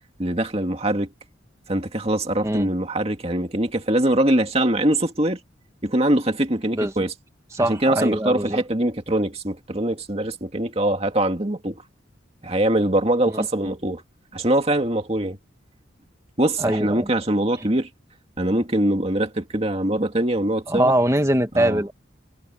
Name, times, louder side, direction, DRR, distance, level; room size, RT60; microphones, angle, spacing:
voice 1, 0.2-1.1 1.7-5.4 5.8-7.1 7.7-11.8 12.4-14.0 14.3-15.4 16.4-17.9 18.4-20.9 21.5-21.8, right 1 dB, 30° right, 2.2 m, -23 dB
voice 2, 7.5-8.6 13.3-13.4 16.6-17.1 20.7-21.9, right 1 dB, 15° right, 1.7 m, -22 dB
head